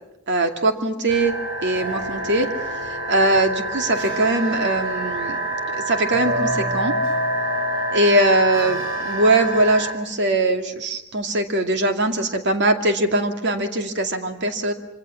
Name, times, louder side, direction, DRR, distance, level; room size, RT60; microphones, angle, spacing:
voice 1, 0.3-1.3 1.6-2.5 2.8-5.4 5.7-7.0 7.9-14.7, right 1 dB, 55° right, 6 dB, 2.4 m, -21 dB
sound 1, 1.1-9.9, right 1 dB, 70° right, 5.3 m, -26 dB
26.0 x 25.5 x 7.1 m, 0.88 s
head